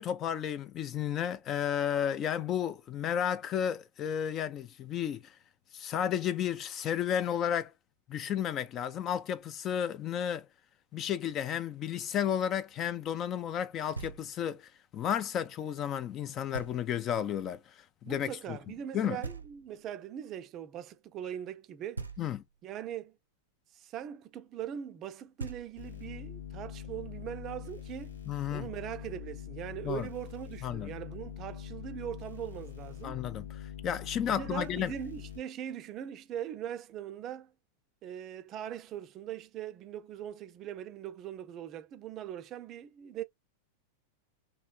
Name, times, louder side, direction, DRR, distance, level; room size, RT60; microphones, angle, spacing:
voice 1, 0.0-5.3 5.7-7.7 8.1-10.5 10.9-18.6 18.9-19.2 22.2-22.4 28.3-28.7 29.8-30.1 30.6-30.9 33.0-34.9, left 9 dB, 30° left, 0.4 m, -33 dB
Knock, 13.9-14.6 16.5-17.2 19.2-20.0 21.9-22.7 25.0-25.1 25.4-26.2, right 3 dB, 85° right, 0.6 m, -43 dB
voice 2, 18.0-22.0 22.6-23.1 23.7-28.2 28.5-33.2 34.2-37.5 38.0-43.2, right 10 dB, 35° right, 0.5 m, -41 dB
sound 1, 25.8-35.4, left 10 dB, 75° left, 0.9 m, -44 dB
3.1 x 3.0 x 2.3 m
figure-of-eight pair, 90°, 0 cm